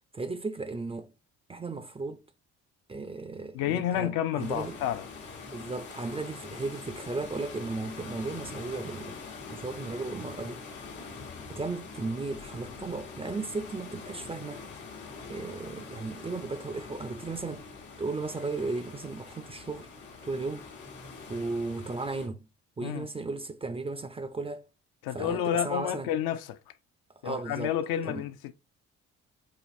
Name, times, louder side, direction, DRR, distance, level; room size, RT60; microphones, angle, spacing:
voice 1, 0.1-1.1 1.5-2.2 2.9-4.8 5.5-9.2 9.5-10.6 11.5-14.6 15.3-17.7 18.0-19.9 20.2-20.7 21.3-22.5 22.8-24.7 25.1-26.1 27.2-27.7 28.0-28.2, right 3 dB, 15° right, 0.3 m, -35 dB
voice 2, 3.5-5.1 22.8-23.1 25.0-26.6 27.2-28.5, left 10 dB, 70° left, 0.5 m, -30 dB
sound 1, 4.4-22.3, left 4 dB, 90° left, 1.1 m, -44 dB
4.8 x 2.5 x 2.6 m
hypercardioid pair, 50°, 37 cm